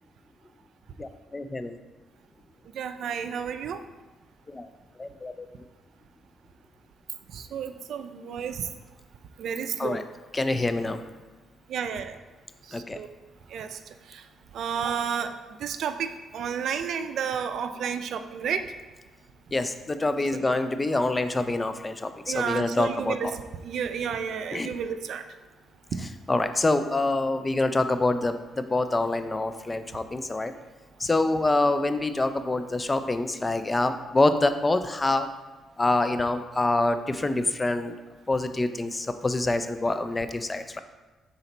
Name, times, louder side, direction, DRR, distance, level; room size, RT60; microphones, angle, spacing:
voice 1, 1.0-1.7 4.5-4.7 5.0-5.5 9.8-10.0 10.3-11.0 12.7-13.0 19.5-23.3 24.5-24.7 26.3-30.5 31.0-35.3 35.8-37.9 38.3-40.8, left 2 dB, 20° left, 9 dB, 0.4 m, -26 dB
voice 2, 2.7-3.8 7.3-8.7 9.4-10.0 11.7-12.2 12.7-13.1 13.5-13.8 14.1-14.2 14.5-15.3 15.6-18.6 20.5-20.6 22.3-25.2, right 7 dB, 70° right, 9 dB, 0.4 m, -31 dB
5.9 x 4.0 x 4.0 m, 1.2 s
cardioid pair, 90°, 0 cm